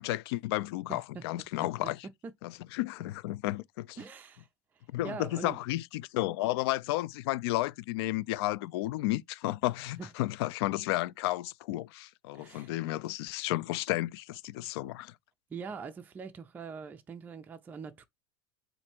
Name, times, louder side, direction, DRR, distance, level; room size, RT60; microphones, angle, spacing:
voice 1, 0.0-2.1 2.4-4.0 4.9-15.1, left 17 dB, 65° left, 0.4 m, -32 dB
voice 2, 0.9-1.2 1.6-1.7 4.0-4.5 5.0-5.6 10.0-10.1 12.3-12.7 15.5-18.1, right 5 dB, 10° right, 0.4 m, -43 dB
4.2 x 2.6 x 4.3 m
supercardioid pair, 160°, 14 cm